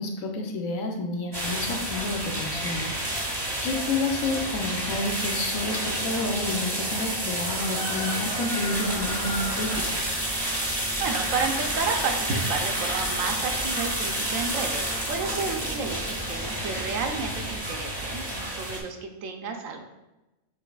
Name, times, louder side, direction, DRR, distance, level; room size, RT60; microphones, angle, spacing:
voice 1, 0.0-2.9 3.6-10.0, left 2 dB, 75° left, 3 dB, 1.0 m, -30 dB
sound 1, 1.3-18.8, right 1 dB, 20° right, 0.7 m, -30 dB
Wind, 8.7-17.6, equal, 35° left, 1.0 m, -40 dB
voice 2, 11.0-19.8, right 4 dB, 75° right, 4 dB, 1.0 m, -31 dB
7.1 x 3.2 x 2.3 m, 1.0 s
omnidirectional pair, 1.5 m